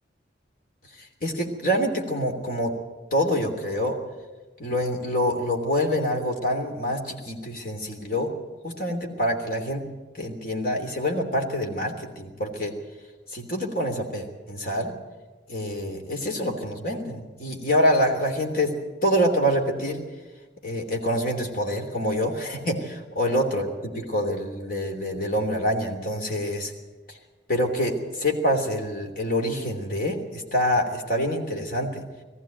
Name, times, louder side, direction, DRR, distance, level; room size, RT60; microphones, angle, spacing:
voice 1, 1.2-2.7 3.1-4.0 4.6-8.3 8.6-9.8 10.1-12.7 13.3-14.9 15.5-18.7 19.0-20.0 20.6-26.7 27.5-32.0, equal, 50° left, 2 dB, 3.1 m, -26 dB
20.0 x 14.5 x 9.2 m, 1.3 s
head